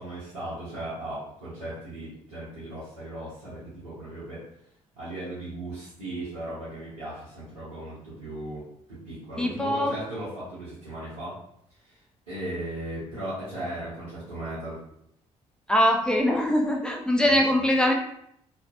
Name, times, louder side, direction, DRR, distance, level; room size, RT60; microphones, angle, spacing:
voice 1, 0.0-4.4 5.0-11.4 11.8-12.0 12.3-14.8 17.2-17.4, right 1 dB, 85° right, -13 dB, 0.7 m, -37 dB
voice 2, 9.4-9.9 15.7-17.9, left 1 dB, 5° left, 1 dB, 0.5 m, -22 dB
2.4 x 2.2 x 2.4 m, 0.73 s
figure-of-eight pair, 40°, 17 cm